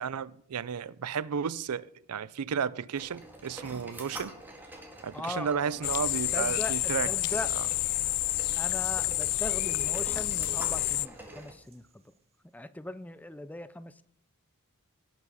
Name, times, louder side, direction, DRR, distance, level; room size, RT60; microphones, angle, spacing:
voice 1, 0.0-4.3 5.0-7.1 7.5-7.6, right 7 dB, 85° right, 0.5 m, -33 dB
sound 1, 2.9-11.5, right 1 dB, 10° right, 2.0 m, -47 dB
voice 2, 5.1-5.9 6.3-7.5 8.6-12.0 12.5-14.0, left 1 dB, 5° left, 0.4 m, -39 dB
sound 2, 5.8-11.1, left 17 dB, 90° left, 0.4 m, -29 dB
sound 3, 7.4-11.9, right 2 dB, 30° right, 1.0 m, -52 dB
18.0 x 6.1 x 5.6 m
head